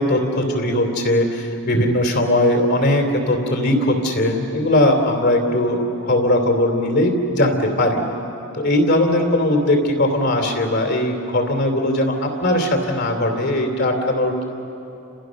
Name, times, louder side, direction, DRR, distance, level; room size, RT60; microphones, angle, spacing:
voice 1, 0.0-8.0 8.5-14.4, left 1 dB, 50° left, 4 dB, 3.3 m, -19 dB
30.0 x 27.0 x 6.5 m, 2.9 s
head